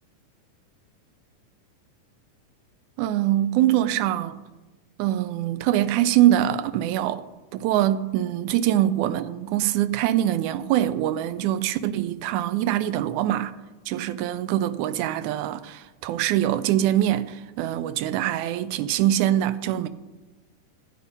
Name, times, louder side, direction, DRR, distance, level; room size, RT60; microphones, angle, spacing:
voice 1, 3.0-4.4 5.0-7.2 7.5-13.5 13.9-19.9, right 12 dB, 80° right, 1.9 m, -23 dB
13.5 x 8.4 x 5.3 m
omnidirectional pair, 3.8 m